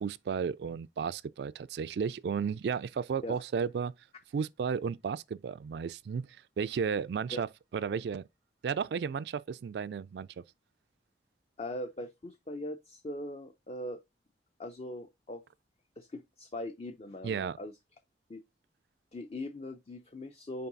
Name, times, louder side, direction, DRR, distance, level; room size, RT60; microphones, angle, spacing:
voice 1, 0.0-3.9 4.3-6.3 6.6-7.5 7.7-8.3 8.6-10.3 17.2-17.6, right 6 dB, 65° right, 0.3 m, -33 dB
voice 2, 11.6-14.0 14.6-15.4 16.0-17.7 18.3-18.4 19.1-20.7, left 1 dB, 35° left, 0.5 m, -40 dB
5.7 x 4.6 x 3.9 m
head